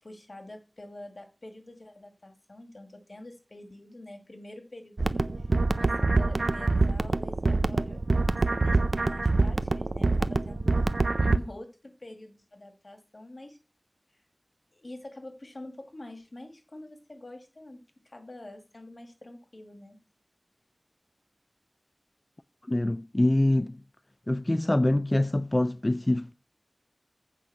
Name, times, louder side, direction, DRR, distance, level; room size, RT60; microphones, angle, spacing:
voice 1, 0.0-10.9 11.2-13.6 14.7-20.0, left 1 dB, 75° left, 1.9 m, -46 dB
sound 1, 5.0-11.4, right 3 dB, 90° right, 0.4 m, -25 dB
voice 2, 22.7-23.8 24.3-26.3, left 1 dB, 40° left, 0.3 m, -25 dB
8.4 x 5.1 x 5.8 m
wide cardioid pair, 40°, 0 cm